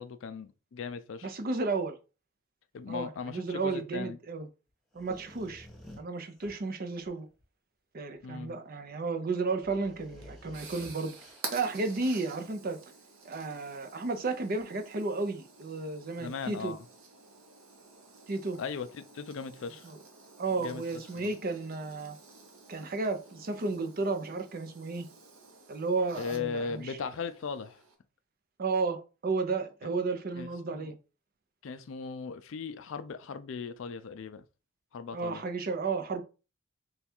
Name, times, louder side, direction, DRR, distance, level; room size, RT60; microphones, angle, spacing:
voice 1, 0.0-1.3 2.7-4.2 8.2-8.6 16.2-16.9 18.6-19.9 20.5-20.8 21.2-21.4 26.1-27.8 30.4-30.9 31.6-34.5 34.9-35.4, left 5 dB, 65° left, 0.4 m, -38 dB
voice 2, 1.2-1.9 2.9-4.5 4.9-5.7 6.0-7.3 7.9-11.2 11.5-12.8 13.2-16.7 18.3-18.6 19.8-19.9 20.4-22.2 22.7-25.1 25.7-27.0 28.6-31.0 35.1-36.2, right 3 dB, 45° right, 0.6 m, -33 dB
sound 1, 4.9-7.4 8.2-8.3 8.8-8.9 9.3-11.8 14.5-14.6, left 1 dB, ahead, 0.8 m, -53 dB
sound 2, 10.0-27.9, right 4 dB, 70° right, 0.9 m, -50 dB
3.4 x 2.3 x 4.3 m
head